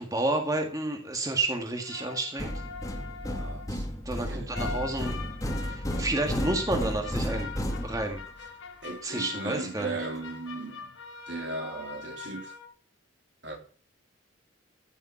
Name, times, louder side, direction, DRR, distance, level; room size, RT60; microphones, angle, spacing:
voice 1, 0.0-2.5 4.1-5.2 5.6-7.5 7.8-8.2 9.0-10.0, right 2 dB, 15° right, 1.9 m, -30 dB
sound 1, 1.8-3.8 4.5-12.7, left 5 dB, 80° left, 3.7 m, -43 dB
sound 2, 2.4-8.4, equal, 15° left, 2.3 m, -33 dB
voice 2, 3.2-3.9 4.3-4.5 8.8-10.9 11.3-12.5 13.4-13.6, right 3 dB, 60° right, 3.4 m, -37 dB
16.0 x 7.3 x 6.1 m
head